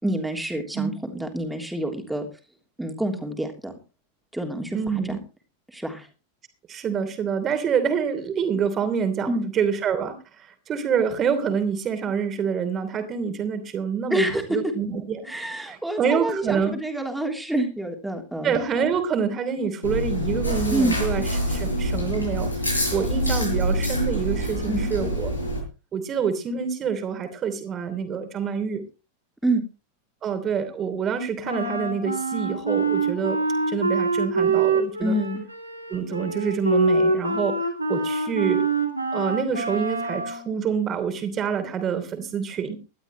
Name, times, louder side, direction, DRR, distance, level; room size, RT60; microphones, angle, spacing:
voice 1, 0.0-2.3 2.8-3.7 4.3-4.8 5.1-5.2 5.7-6.1 9.3-9.5 14.1-14.4 15.3-18.5 20.7-21.0 24.7-24.9 29.4-29.6 35.0-35.4, right 1 dB, 5° right, 3 dB, 3.3 m, -27 dB
voice 2, 4.7-5.2 6.7-15.3 15.6-16.8 18.4-22.5 22.9-25.3 25.9-28.8 30.2-33.4 33.7-35.2 35.9-37.6 37.9-38.7 39.1-42.8, right 7 dB, 25° right, 9 dB, 3.0 m, -26 dB
Chewing mastication, 19.8-25.6, equal, 85° left, 6.6 m, -26 dB
Wind instrument woodwind instrument, 31.4-40.4, right 3 dB, 85° right, 3.1 m, -25 dB
19.0 x 12.5 x 3.2 m, 0.31 s
figure-of-eight pair, 90°, 0 cm